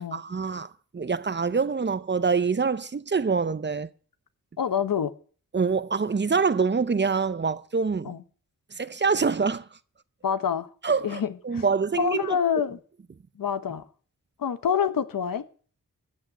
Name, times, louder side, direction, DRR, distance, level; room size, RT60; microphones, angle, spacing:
voice 1, 0.0-3.9 5.5-8.1 8.7-9.7 10.8-12.4, right 5 dB, 35° right, 0.7 m, -25 dB
voice 2, 4.6-5.1 8.0-8.2 10.2-10.7 11.0-11.6 12.0-12.8 13.4-13.8 14.4-15.4, left 7 dB, 85° left, 1.0 m, -26 dB
14.0 x 6.2 x 9.1 m
wide cardioid pair, 75°, 33 cm